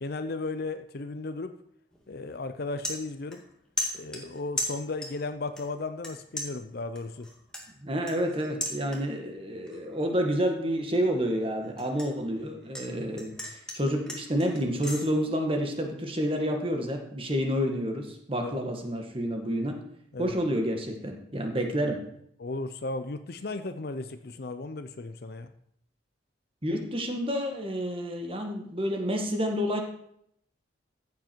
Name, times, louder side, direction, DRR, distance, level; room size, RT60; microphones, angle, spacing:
voice 1, 0.0-1.5 2.1-3.4 3.9-7.3 18.4-18.5 20.1-20.3 22.4-25.5, left 3 dB, 55° left, 9 dB, 0.6 m, -35 dB
sound 1, 1.9-2.1 2.5-3.5 3.8-5.3 5.6-6.1 6.4-9.3 9.7-10.0 10.4-12.9 13.2-15.1, left 1 dB, 5° left, 1.9 m, -36 dB
voice 2, 7.8-19.8 20.2-22.0 26.6-29.8, equal, 30° right, 3 dB, 1.6 m, -29 dB
15.0 x 7.5 x 4.6 m, 0.71 s
head